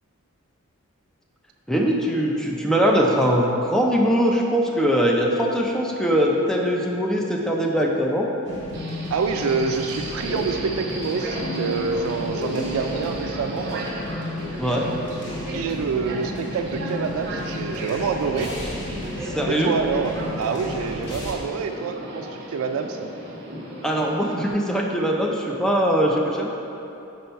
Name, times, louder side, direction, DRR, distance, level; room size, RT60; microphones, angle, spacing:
voice 1, 1.7-8.3 14.6-14.9 19.2-19.7 23.8-26.5, equal, 5° left, -1 dB, 0.5 m, -21 dB
sound 1, 8.4-21.3, left 1 dB, 60° left, 1.1 m, -34 dB
Subway metro underground, 8.7-24.5, right 1 dB, 50° right, 1.0 m, -34 dB
voice 2, 9.1-13.9 15.5-18.5 19.5-23.1, right 5 dB, 80° right, 5 dB, 0.3 m, -27 dB
5.5 x 4.2 x 4.4 m, 2.9 s
head